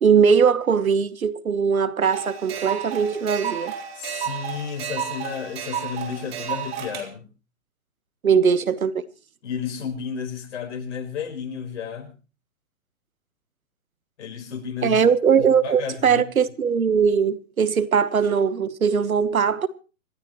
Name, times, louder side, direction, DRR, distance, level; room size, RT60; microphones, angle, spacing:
voice 1, 0.0-3.7 8.2-9.0 14.8-19.7, right 6 dB, 90° right, 1.3 m, -20 dB
sound 1, 2.0-7.0, right 8 dB, 45° right, 3.7 m, -32 dB
voice 2, 4.0-7.3 9.4-12.1 14.2-15.0 15.4-16.2, left 7 dB, 55° left, 4.4 m, -32 dB
26.0 x 13.0 x 3.1 m
hypercardioid pair, 140°, 41 cm